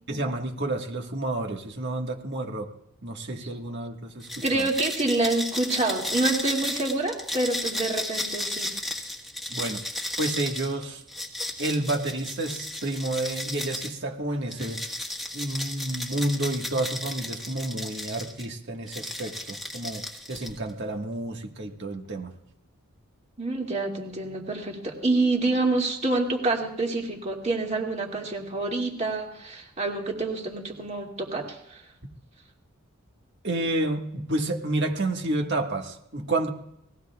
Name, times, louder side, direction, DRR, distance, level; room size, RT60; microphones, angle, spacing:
voice 1, 0.1-2.7 3.0-4.7 9.5-9.8 10.2-11.0 11.6-14.8 15.3-22.3 33.4-36.5, right 2 dB, 50° right, 3 dB, 1.6 m, -30 dB
sound 1, 4.2-14.0 14.5-18.5 18.9-20.7, left 1 dB, ahead, 1.5 m, -34 dB
voice 2, 4.4-8.7 23.4-31.8, right 2 dB, 30° right, 0 dB, 2.5 m, -27 dB
30.0 x 19.5 x 2.4 m, 0.81 s
head